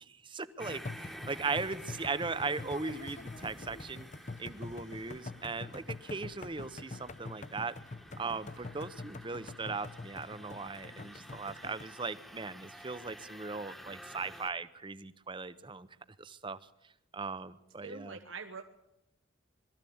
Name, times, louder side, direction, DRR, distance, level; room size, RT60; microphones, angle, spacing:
voice 1, 0.0-4.1 4.4-7.7 8.2-15.9 16.2-16.6 17.1-18.2, right 4 dB, 25° right, 15 dB, 0.7 m, -38 dB
sound 1, 0.6-11.8, left 3 dB, 35° left, 0.7 m, -46 dB
sound 2, 0.6-14.5, equal, ahead, 1.2 m, -51 dB
voice 2, 17.8-18.6, right 5 dB, 70° right, 6 dB, 1.1 m, -44 dB
21.5 x 14.0 x 8.6 m, 0.86 s
head